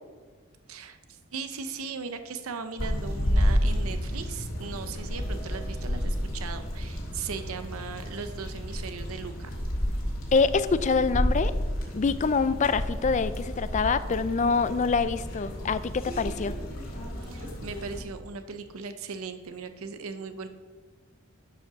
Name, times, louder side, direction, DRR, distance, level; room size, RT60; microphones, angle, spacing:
voice 1, 0.7-9.5 17.2-20.5, right 5 dB, 90° right, 9 dB, 0.7 m, -38 dB
sound 1, 2.8-18.0, equal, 65° left, 2.5 m, -31 dB
voice 2, 10.3-11.5 11.9-16.6, left 4 dB, 35° left, 14 dB, 0.4 m, -25 dB
11.5 x 5.4 x 6.1 m, 1.5 s
head